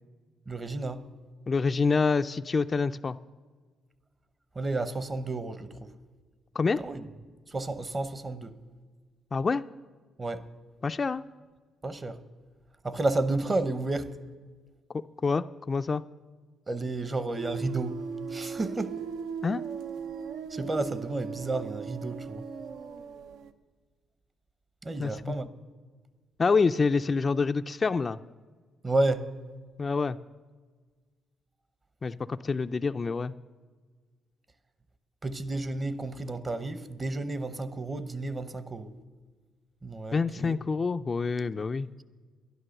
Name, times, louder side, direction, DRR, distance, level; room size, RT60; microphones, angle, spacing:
voice 1, 0.5-1.1 4.5-5.9 6.8-7.1 7.5-8.5 10.2-10.5 11.8-12.2 12.8-14.1 16.7-18.0 18.3-19.0 20.5-22.4 24.8-25.5 28.8-29.3 35.2-38.9 39.8-40.6, right 2 dB, 30° right, 0.8 m, -31 dB
voice 2, 1.5-3.2 6.6-6.8 9.3-9.6 10.8-11.2 15.2-16.0 19.4-19.6 25.0-25.4 26.4-28.2 29.8-30.2 32.0-33.3 40.1-41.9, left 4 dB, 35° left, 0.3 m, -27 dB
sound 1, 17.4-23.5, right 6 dB, 85° right, 0.6 m, -38 dB
11.0 x 11.0 x 6.6 m
cardioid pair, 90°, 0 cm